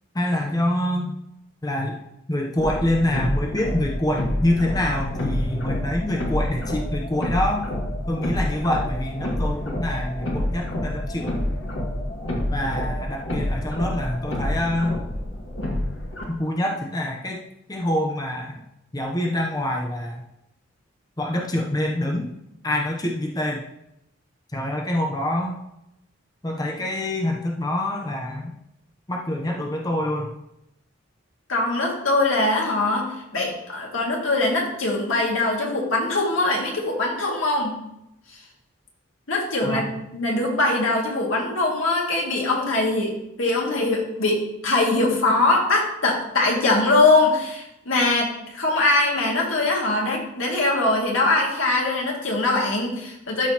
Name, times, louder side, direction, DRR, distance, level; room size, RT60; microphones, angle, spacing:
voice 1, 0.1-1.2 1.6-2.0 2.3-7.7 8.1-11.3 12.5-15.0 16.3-17.4 17.7-18.6 18.9-20.2 21.2-22.3 22.6-23.6 24.5-25.6 26.4-28.5 29.1-30.3 39.6-39.9, left 1 dB, 20° left, 0 dB, 0.7 m, -25 dB
sound 1, 2.6-16.2, left 1 dB, 70° left, 1.9 m, -28 dB
voice 2, 31.5-37.8 39.3-53.5, left 2 dB, 85° left, -1 dB, 2.2 m, -22 dB
12.5 x 6.2 x 2.9 m, 0.84 s
head